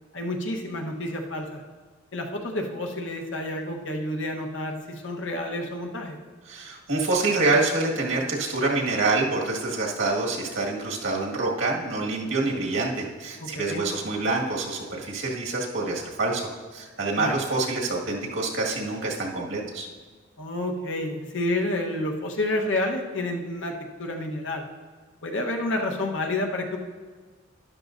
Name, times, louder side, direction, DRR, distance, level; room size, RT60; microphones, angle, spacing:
voice 1, 0.1-1.6 2.1-6.2 13.4-13.8 17.2-17.3 20.4-23.7 24.0-24.6 25.2-26.8, left 1 dB, 70° left, 2 dB, 1.2 m, -29 dB
voice 2, 6.5-19.9, right 3 dB, 80° right, -2 dB, 1.9 m, -26 dB
12.5 x 11.5 x 2.6 m, 1.4 s
head